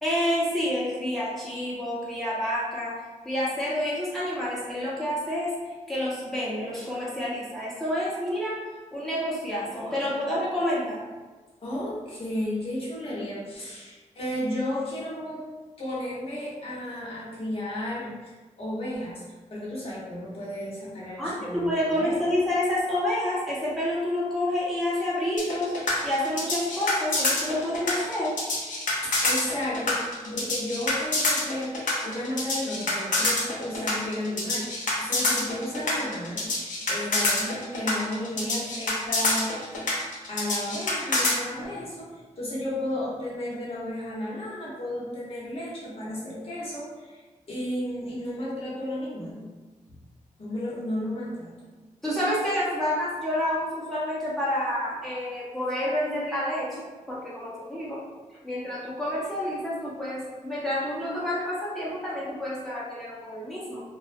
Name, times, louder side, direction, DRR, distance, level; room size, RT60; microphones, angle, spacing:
voice 1, 0.0-3.0 3.2-8.6 8.9-11.0 21.2-28.3 52.0-58.0 58.4-63.8, left 1 dB, ahead, -9 dB, 0.9 m, -28 dB
voice 2, 11.6-15.4 15.8-19.2 19.5-22.2 29.0-29.9 30.2-39.8 40.3-49.5 49.9-50.0 50.4-51.5, left 1 dB, 45° left, -7 dB, 0.9 m, -33 dB
sound 1, 25.4-41.4, left 2 dB, 80° left, 0.6 m, -26 dB
2.5 x 2.0 x 2.5 m, 1.3 s
wide cardioid pair, 90°, 13 cm